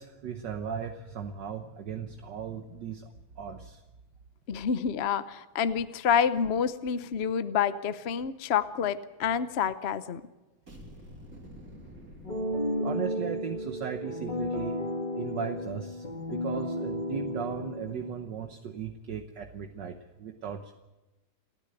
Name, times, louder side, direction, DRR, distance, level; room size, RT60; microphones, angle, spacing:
voice 1, 0.0-3.1 3.4-3.8 4.5-4.6 12.8-14.8 15.2-20.7, right 7 dB, 65° right, 6 dB, 1.6 m, -37 dB
voice 2, 4.5-10.2, left 7 dB, 50° left, 13 dB, 0.7 m, -28 dB
sound 1, 10.7-13.4, equal, 45° right, 4.0 m, -49 dB
sound 2, 12.2-18.3, equal, 25° left, 2.3 m, -33 dB
29.5 x 10.0 x 9.2 m, 1.1 s
omnidirectional pair, 2.1 m